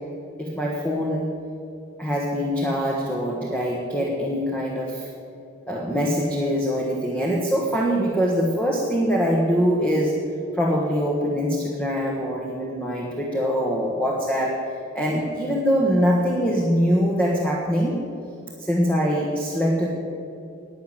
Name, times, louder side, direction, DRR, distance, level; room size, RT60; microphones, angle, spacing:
voice 1, 0.4-1.3 2.0-5.1 5.7-10.2 10.5-14.7 14.9-18.0 18.6-19.9, equal, 10° left, -3 dB, 1.3 m, -23 dB
11.5 x 9.3 x 7.5 m, 2.7 s
head